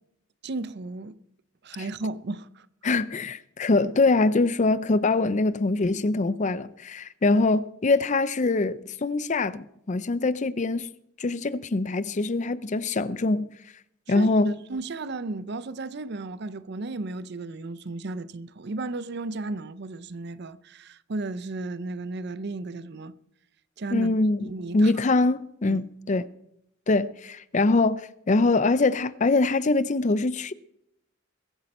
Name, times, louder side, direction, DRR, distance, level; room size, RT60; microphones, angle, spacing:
voice 1, 0.4-1.2 1.6-2.7 14.1-23.1 23.8-24.1 24.4-24.9 25.7-25.8, right 3 dB, 55° right, 0.6 m, -34 dB
voice 2, 2.8-10.9 11.2-13.5 14.1-14.6 23.9-26.3 26.9-30.5, left 3 dB, 35° left, 0.5 m, -23 dB
22.0 x 8.6 x 4.2 m
head